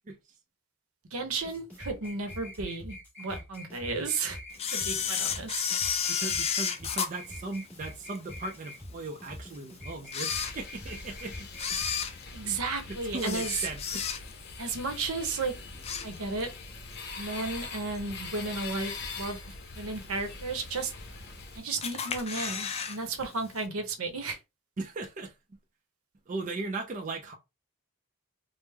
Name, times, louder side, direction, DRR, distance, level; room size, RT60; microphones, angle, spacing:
voice 1, 1.1-4.4 4.7-5.6 12.3-13.6 14.6-15.5 16.0-16.5 17.2-19.4 19.8-20.9 21.5-24.4, right 3 dB, 80° right, 0.8 m, -33 dB
sound 1, 1.4-11.9, left 1 dB, 5° left, 1.4 m, -45 dB
Camera, 4.6-8.2 8.7-8.8 9.5-9.6 10.0-11.0 11.5-14.5 14.9-15.2 15.5-16.6 16.9-17.0 18.0-18.1 18.6-19.0 19.5-19.6 19.7-19.8 20.0-20.1 20.9-21.4 21.8-23.0 23.2-23.3 23.6-23.7, left 7 dB, 30° left, 0.3 m, -32 dB
voice 2, 6.1-11.8 12.9-14.0 24.8-25.3 26.3-27.3, right 3 dB, 35° right, 0.4 m, -38 dB
sound 2, 10.3-21.6, left 4 dB, 50° left, 0.7 m, -43 dB
3.3 x 2.0 x 3.2 m
head